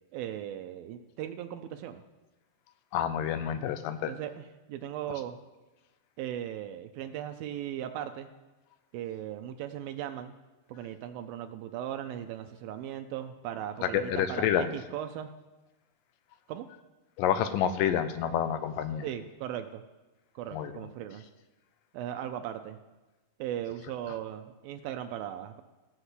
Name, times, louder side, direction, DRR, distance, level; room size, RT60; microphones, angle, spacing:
voice 1, 0.1-2.0 4.1-5.4 6.2-8.3 8.9-10.3 10.7-15.3 16.5-16.7 19.0-19.8 20.4-21.2 21.9-22.8 23.4-25.6, right 11 dB, 85° right, 7 dB, 2.4 m, -38 dB
voice 2, 2.9-4.1 13.8-14.7 17.2-19.1 20.5-20.7, left 9 dB, 75° left, 10 dB, 2.3 m, -28 dB
15.5 x 5.9 x 8.1 m, 1.1 s
omnidirectional pair, 4.2 m